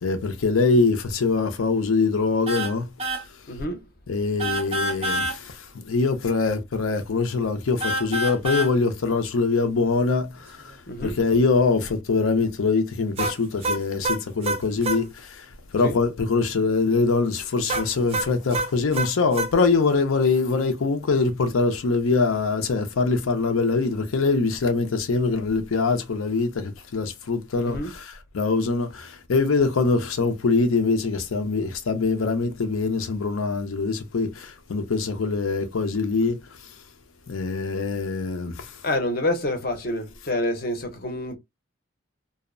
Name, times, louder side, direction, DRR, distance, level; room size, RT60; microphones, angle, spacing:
voice 1, 0.0-2.9 4.1-36.7 37.3-38.8, left 4 dB, 85° left, 0.5 m, -23 dB
sound 1, 2.5-2.7 3.0-3.2 4.4-5.4 7.8-8.7 13.2-15.0 17.7-19.5, right 2 dB, 30° right, 0.4 m, -26 dB
voice 2, 3.5-3.8 10.9-11.1 15.8-15.9 27.6-27.9 38.8-41.4, left 1 dB, 45° left, 0.6 m, -27 dB
2.6 x 2.0 x 2.4 m
head